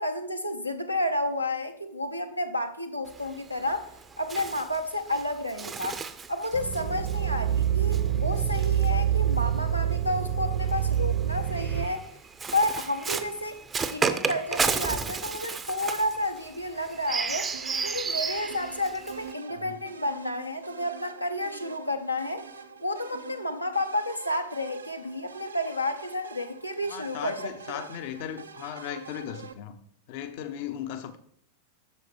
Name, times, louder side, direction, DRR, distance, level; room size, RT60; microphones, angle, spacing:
voice 1, 0.0-6.0 6.3-12.1 12.5-13.6 13.9-17.5 17.8-22.4 22.8-27.9, left 1 dB, 90° left, 0.7 m, -31 dB
Bird, 3.1-9.6 10.5-19.3, right 5 dB, 20° right, 0.5 m, -33 dB
sound 1, 6.5-11.9, right 10 dB, 50° right, 0.8 m, -26 dB
Lead us, 17.5-29.5, right 6 dB, 75° right, 0.5 m, -45 dB
voice 2, 26.9-29.8 30.1-31.2, left 10 dB, 50° left, 0.6 m, -37 dB
8.3 x 6.5 x 3.3 m
figure-of-eight pair, 90°, 0 cm